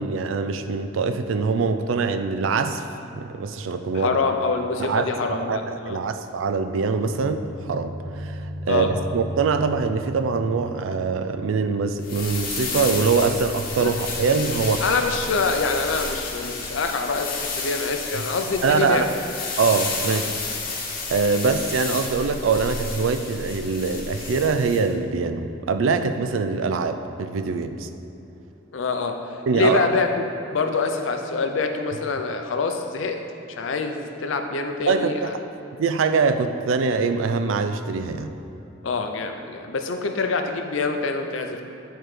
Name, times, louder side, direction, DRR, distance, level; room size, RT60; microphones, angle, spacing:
voice 1, 0.0-2.9 3.1-4.2 4.8-15.0 18.6-19.1 19.6-20.3 21.1-27.9 29.5-29.9 34.9-35.3 35.8-38.3, right 4 dB, 80° right, 9 dB, 0.4 m, -23 dB
voice 2, 3.9-6.0 8.7-8.9 13.8-14.0 14.4-14.5 14.8-19.1 20.1-20.2 28.7-30.2 30.5-33.2 33.5-35.3 38.8-41.6, left 4 dB, 75° left, 5 dB, 0.5 m, -25 dB
sound 1, 6.6-11.2, equal, 10° right, 0.7 m, -35 dB
sound 2, 12.0-24.8, left 4 dB, 45° left, 1.0 m, -31 dB
8.9 x 4.4 x 3.2 m, 2.9 s
head